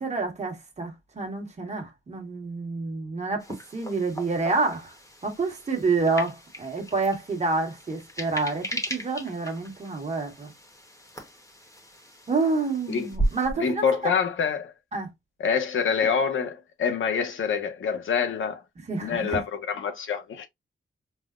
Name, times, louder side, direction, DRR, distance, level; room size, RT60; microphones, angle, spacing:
voice 1, 0.0-3.5 3.7-4.9 5.2-10.5 12.3-14.1 14.9-15.1 18.9-19.4, right 3 dB, 35° right, 1.3 m, -28 dB
sound 1, 3.4-13.5, right 1 dB, 15° left, 0.9 m, -36 dB
voice 2, 13.6-14.7 15.4-18.6 19.0-20.5, left 6 dB, 85° left, 0.7 m, -26 dB
5.4 x 2.1 x 2.3 m
wide cardioid pair, 140°, 20 cm